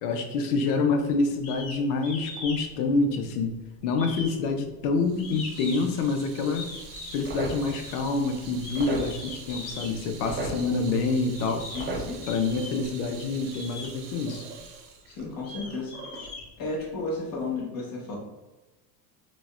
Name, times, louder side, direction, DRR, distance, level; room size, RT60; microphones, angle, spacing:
voice 1, 0.0-3.5 3.8-6.7 7.1-11.6 12.3-14.5, left 3 dB, 80° left, 5 dB, 0.6 m, -27 dB
sound 1, 1.4-1.8 2.0-2.6 2.9-3.5 3.9-6.0 6.5-7.2 7.7-8.0 8.5-9.9 10.7-10.8 11.3-11.9 12.2-12.9 13.4-13.9 14.6-14.7 15.2-17.0, left 3 dB, 60° left, 1.5 m, -40 dB
Water tap faucet / Sink (filling or washing), 5.0-16.3, right 5 dB, 70° right, 0.7 m, -46 dB
sound 2, 6.7-12.7, right 3 dB, 25° right, 0.6 m, -38 dB
voice 2, 11.7-12.3 15.1-16.3 16.6-18.2, left 3 dB, 45° left, -2 dB, 1.1 m, -33 dB
3.9 x 2.1 x 2.3 m, 1.1 s
supercardioid pair, 115°, 47 cm